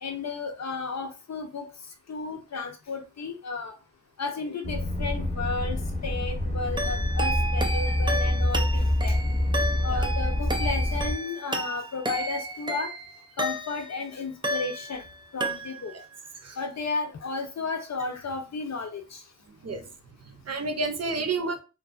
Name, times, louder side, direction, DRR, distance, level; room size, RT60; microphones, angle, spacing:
voice 1, 0.0-1.7 2.1-3.8 4.2-9.1 9.8-12.9 13.4-15.0 15.3-15.9 16.6-19.2, left 4 dB, 65° left, 4 dB, 0.7 m, -33 dB
sound 1, 4.6-11.1, left 1 dB, 25° left, 0.7 m, -26 dB
sound 2, 6.8-14.0 14.4-15.1 15.4-16.0, right 1 dB, 15° right, 0.4 m, -32 dB
voice 2, 19.5-19.9 20.2-21.6, right 3 dB, 60° right, 5 dB, 0.6 m, -31 dB
2.5 x 2.3 x 2.4 m, 0.31 s
cardioid pair, 50°, 29 cm